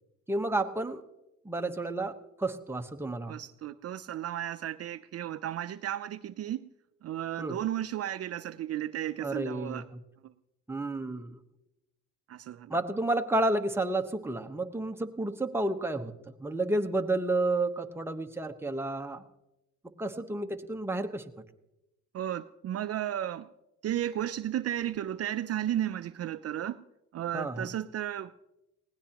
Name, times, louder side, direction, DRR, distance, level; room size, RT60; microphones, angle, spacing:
voice 1, 0.3-1.0 1.4-3.3 7.4-7.6 9.2-9.8 10.7-11.4 12.7-16.1 16.4-19.2 20.0-21.2 27.3-27.7, right 2 dB, 10° right, 5 dB, 1.1 m, -31 dB
voice 2, 3.3-6.7 7.0-9.9 10.2-10.3 12.3-12.8 22.1-23.5 23.8-26.8 27.1-28.4, right 11 dB, 55° right, 12 dB, 0.5 m, -34 dB
20.0 x 17.0 x 2.9 m, 0.91 s
cardioid pair, 90°, 30 cm